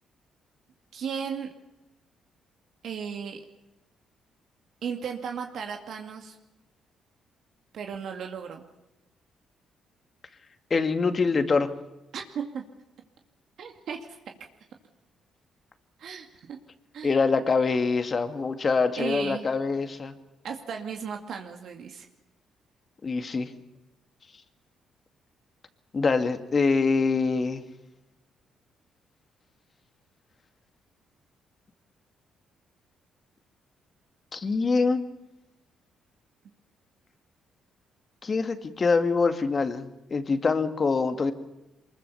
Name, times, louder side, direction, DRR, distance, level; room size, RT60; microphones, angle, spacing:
voice 1, 0.9-1.5 2.8-3.4 4.8-6.4 7.7-8.6 12.1-12.6 13.6-14.2 16.0-16.6 16.9-17.2 18.9-19.5 20.4-22.1, right 7 dB, 65° right, 4 dB, 2.2 m, -35 dB
voice 2, 10.7-11.7 17.0-20.2 23.0-23.5 25.9-27.6 34.3-35.1 38.2-41.3, left 4 dB, 35° left, 9 dB, 2.1 m, -24 dB
24.0 x 21.5 x 7.0 m, 0.95 s
cardioid pair, 90°, 0 cm